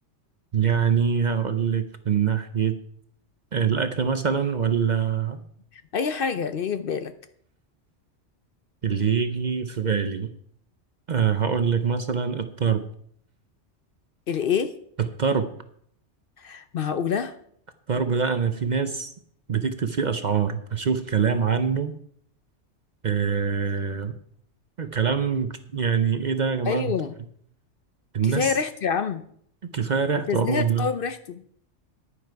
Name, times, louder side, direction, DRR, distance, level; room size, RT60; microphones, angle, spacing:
voice 1, 0.5-2.7 3.5-5.4 8.8-10.3 11.1-12.8 15.2-15.5 17.9-19.1 19.5-21.9 23.0-24.1 24.8-26.9 28.1-28.6 29.6-30.9, right 6 dB, 45° right, 10 dB, 0.7 m, -24 dB
voice 2, 5.9-7.1 14.3-14.7 16.4-17.3 26.7-27.1 28.2-29.2 30.3-31.4, left 6 dB, 55° left, 11 dB, 0.7 m, -26 dB
10.0 x 9.8 x 4.6 m, 0.65 s
omnidirectional pair, 1.2 m